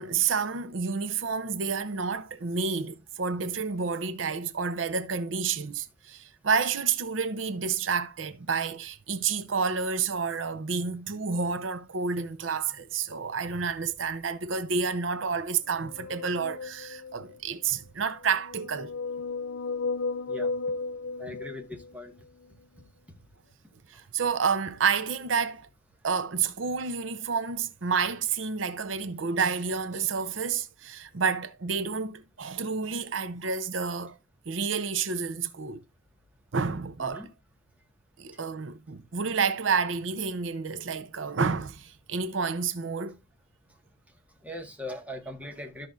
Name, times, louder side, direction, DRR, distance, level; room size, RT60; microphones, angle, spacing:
voice 1, 0.0-18.9 23.9-25.7 26.0-34.2 34.5-35.8 36.5-37.3 38.2-43.2, right 5 dB, 75° right, 0.7 m, -29 dB
sound 1, 15.7-17.4 18.2-22.1, left 4 dB, 75° left, 0.6 m, -34 dB
voice 2, 21.2-22.1 37.0-37.3 44.4-45.9, left 1 dB, 10° right, 1.6 m, -39 dB
13.5 x 5.8 x 2.5 m
head